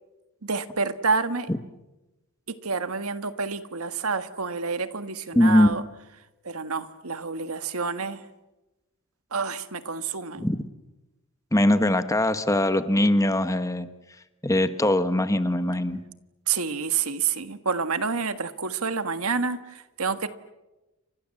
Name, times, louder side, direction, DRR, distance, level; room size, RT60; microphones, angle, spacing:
voice 1, 0.4-1.5 2.5-5.8 6.4-8.2 9.3-10.5 16.5-20.3, right 5 dB, 75° right, 10 dB, 1.6 m, -28 dB
voice 2, 5.3-5.8 10.4-10.6 11.5-13.9 14.4-16.0, left 1 dB, 15° left, 10 dB, 1.3 m, -21 dB
30.0 x 25.5 x 7.6 m, 1.0 s
head